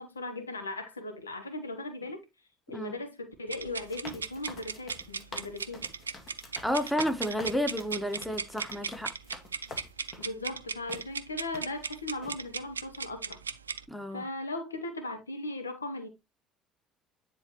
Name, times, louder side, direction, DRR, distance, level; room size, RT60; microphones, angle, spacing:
voice 1, 0.0-2.2 2.7-5.9 10.2-13.4 14.1-16.1, left 2 dB, 90° left, 1.0 m, -38 dB
sound 1, 3.5-13.8, right 5 dB, 90° right, 0.4 m, -37 dB
sound 2, 3.8-10.3 10.9-11.0 11.5-11.9 12.2-12.4, left 3 dB, 40° left, 2.0 m, -47 dB
voice 2, 6.6-9.1 13.9-14.2, equal, 5° left, 1.4 m, -31 dB
9.9 x 3.9 x 3.1 m
figure-of-eight pair, 55°, 0 cm